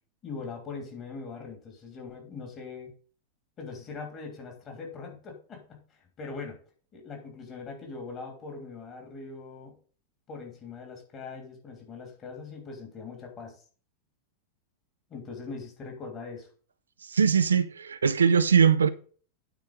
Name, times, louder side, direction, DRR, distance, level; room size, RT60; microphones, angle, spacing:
voice 1, 0.2-2.9 3.6-6.6 6.9-9.8 10.3-13.6 15.1-16.5, left 4 dB, 30° left, 3.0 m, -41 dB
voice 2, 17.1-18.9, right 6 dB, 70° right, 0.5 m, -21 dB
9.1 x 4.6 x 5.3 m
figure-of-eight pair, 90°, 0 cm